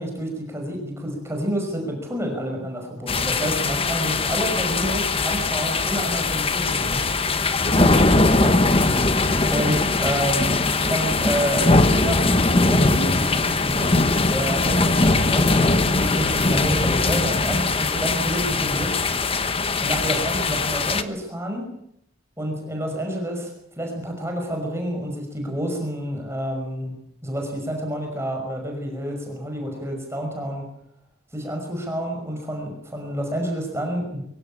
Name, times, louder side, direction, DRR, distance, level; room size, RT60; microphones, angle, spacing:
voice 1, 0.0-7.0 7.8-8.5 9.5-14.0 14.3-19.0 19.8-21.7 22.4-23.5 23.8-26.9 27.2-30.6 31.3-34.2, right 1 dB, 15° right, 2 dB, 5.6 m, -29 dB
sound 1, 3.1-21.0, left 3 dB, 25° left, 1.2 m, -21 dB
24.0 x 17.0 x 8.6 m, 0.72 s
head